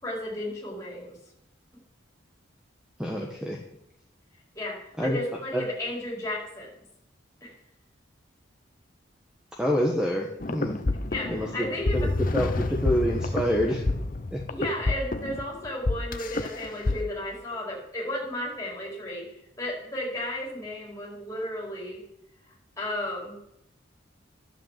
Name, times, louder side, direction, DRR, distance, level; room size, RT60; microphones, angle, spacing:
voice 1, 0.0-1.2 4.5-6.8 7.4-7.5 11.1-12.1 14.5-22.0 22.8-23.4, left 1 dB, 15° left, -4 dB, 4.6 m, -34 dB
voice 2, 3.0-3.6 5.0-5.2 5.5-5.6 9.6-10.8 11.3-11.7 11.9-12.1 12.3-13.9 14.3-14.4, equal, 5° right, -1 dB, 1.2 m, -27 dB
sound 1, 10.4-17.0, left 2 dB, 45° left, 0.8 m, -28 dB
11.5 x 7.9 x 7.6 m, 0.82 s
head